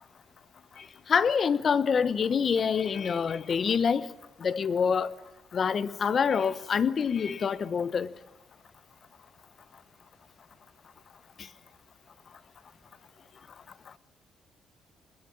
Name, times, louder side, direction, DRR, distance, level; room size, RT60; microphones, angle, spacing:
voice 1, 1.1-4.1 4.4-5.1 5.5-8.1, left 6 dB, 50° left, 1.0 m, -26 dB
22.0 x 21.5 x 8.7 m
cardioid pair, 90°, 0 cm